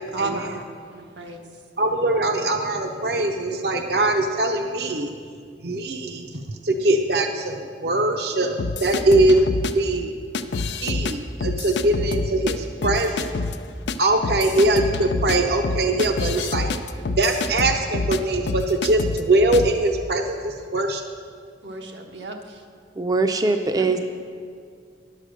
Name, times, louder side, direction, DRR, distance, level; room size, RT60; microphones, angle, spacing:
voice 1, 0.1-0.6 0.9-1.4 21.6-22.6 23.7-23.9, right 2 dB, 90° right, 2 dB, 1.1 m, -32 dB
voice 2, 1.8-5.1 5.6-9.4 9.7-10.1 10.8-13.3 14.0-16.7 17.2-21.0, right 2 dB, 65° right, 5 dB, 0.6 m, -22 dB
sound 1, 8.6-9.7 10.3-11.1 11.4-12.5 12.8-13.6 13.9-14.0 14.2-18.2 18.5-19.2 19.5-19.7, left 3 dB, 80° left, 0.5 m, -27 dB
voice 3, 23.0-24.0, right 3 dB, 20° right, 6 dB, 0.4 m, -21 dB
11.0 x 6.6 x 6.4 m, 2.2 s
head